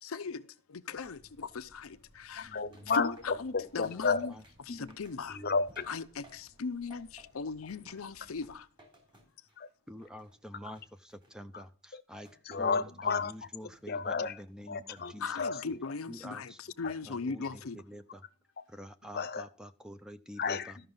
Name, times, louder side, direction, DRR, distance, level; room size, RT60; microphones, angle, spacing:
voice 1, 0.0-2.6 2.9-4.3 4.7-5.4 5.9-8.7 15.2-17.8, left 4 dB, 85° left, 0.6 m, -39 dB
sound 1, 0.9-8.5, equal, 55° right, 5.3 m, -64 dB
voice 2, 2.4-4.2 4.7-4.9 5.3-5.9 11.5-11.6 11.9-12.0 12.5-13.3 13.9-14.3 14.6-15.8 16.8-16.9 19.1-19.5 20.4-20.9, left 4 dB, 45° left, 0.8 m, -32 dB
sound 2, 2.7-6.6 6.9-9.7 10.0-11.6 12.2-12.8 13.2-13.9 14.2-15.1 15.5-15.9, right 1 dB, 25° right, 3.5 m, -61 dB
voice 3, 9.9-12.3 12.6-15.5 16.1-16.6 17.1-18.3 18.7-20.8, equal, 5° right, 0.5 m, -47 dB
13.5 x 5.9 x 5.4 m
head